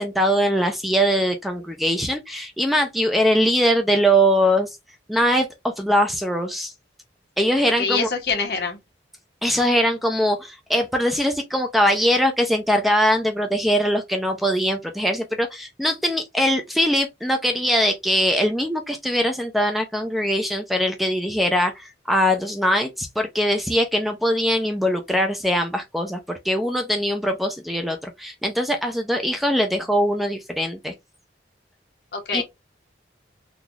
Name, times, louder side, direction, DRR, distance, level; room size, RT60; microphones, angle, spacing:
voice 1, 0.0-4.7 5.1-5.5 5.8-6.7 7.4-8.1 9.4-30.9 32.3-32.4, equal, ahead, 0.4 m, -21 dB
voice 2, 7.8-8.8 32.1-32.4, left 5 dB, 65° left, 1.3 m, -25 dB
3.9 x 2.4 x 2.9 m
head